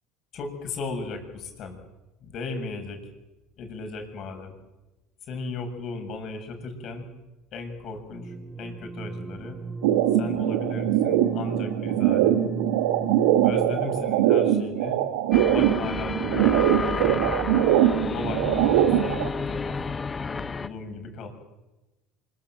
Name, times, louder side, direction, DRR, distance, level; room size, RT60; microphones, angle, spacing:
voice 1, 0.3-1.8 2.2-3.0 3.6-4.5 5.3-7.1 7.5-9.6 10.1-12.3 13.4-15.0 15.5-17.3 18.0-19.8 20.3-21.3, left 3 dB, 55° left, 5 dB, 7.1 m, -36 dB
sound 1, 8.1-14.0, right 3 dB, 15° right, 1.7 m, -37 dB
sound 2, 9.8-19.3, right 11 dB, 85° right, 1.8 m, -22 dB
sound 3, 15.3-20.7, left 4 dB, 25° left, 1.3 m, -31 dB
25.0 x 23.5 x 7.6 m, 1.0 s
supercardioid pair, 85°, 0 cm